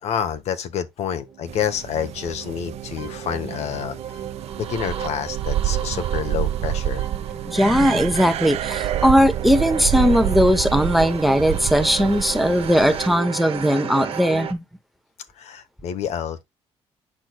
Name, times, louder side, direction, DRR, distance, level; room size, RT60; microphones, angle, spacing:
voice 1, 0.0-4.2 4.5-7.1 15.4-16.4, left 8 dB, 75° left, 1.1 m, -28 dB
sound 1, 1.2-14.5, right 9 dB, 55° right, 1.3 m, -33 dB
sound 2, 1.5-13.2, right 13 dB, 70° right, 0.4 m, -28 dB
voice 2, 7.5-14.6, equal, ahead, 0.8 m, -19 dB
8.8 x 6.0 x 2.3 m
cardioid pair, 150°, 11 cm